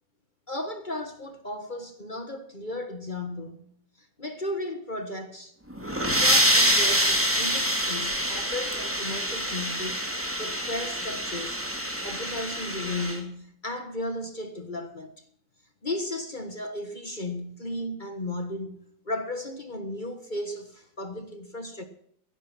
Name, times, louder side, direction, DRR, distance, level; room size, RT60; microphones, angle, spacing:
voice 1, 0.5-3.7 4.0-5.5 6.0-10.0 10.4-11.6 12.0-15.2 15.8-21.8, left 1 dB, 30° left, 1.5 m, -35 dB
sound 1, 5.7-13.2, equal, 5° right, 2.4 m, -26 dB
16.0 x 11.0 x 5.9 m
omnidirectional pair, 1.9 m